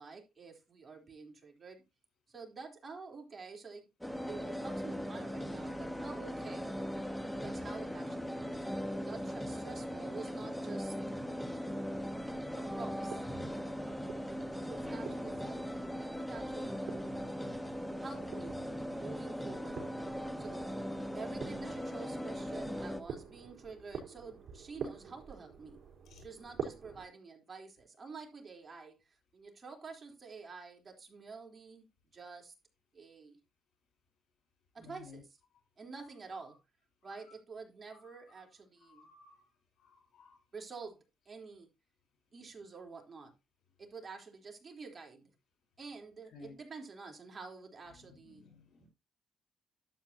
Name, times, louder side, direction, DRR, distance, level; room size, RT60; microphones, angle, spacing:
voice 1, 0.0-1.8 2.3-3.9 4.2-6.8 7.4-8.6 9.1-11.0 12.6-13.3 13.9-14.2 14.7-16.9 18.0-18.6 19.0-19.9 20.4-20.7 21.1-25.8 26.2-29.0 29.3-32.5 32.9-33.4 34.7-35.3 35.8-36.6 37.0-39.1 40.5-41.7 42.3-43.3 43.8-45.3 45.8-48.5, right 4 dB, 35° right, 3.7 m, -49 dB
sound 1, 4.0-23.0, equal, 5° left, 1.3 m, -39 dB
sound 2, 12.0-27.1, right 7 dB, 65° right, 4.2 m, -48 dB
voice 2, 34.8-35.2 37.9-38.0 38.8-39.4 39.8-40.4 46.3-46.5 48.2-48.9, left 4 dB, 75° left, 4.4 m, -55 dB
12.0 x 7.9 x 2.9 m
cardioid pair, 90°, 0 cm